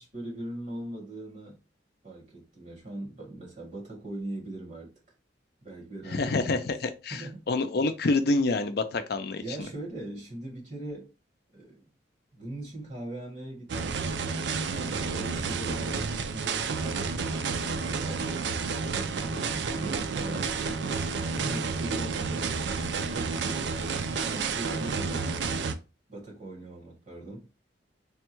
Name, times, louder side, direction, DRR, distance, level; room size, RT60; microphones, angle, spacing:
voice 1, 0.0-1.6 2.0-4.9 5.6-6.7 7.1-7.5 9.4-11.1 11.5-11.9 12.3-14.1 14.7-17.1 17.6-18.5 18.9-20.8 21.3-23.7 23.9-25.4 26.1-27.5, right 2 dB, 45° right, 1.8 m, -40 dB
voice 2, 6.1-9.4, left 3 dB, 60° left, 0.5 m, -27 dB
sound 1, 13.7-25.7, right 4 dB, 70° right, 0.4 m, -30 dB
3.5 x 2.3 x 4.4 m
head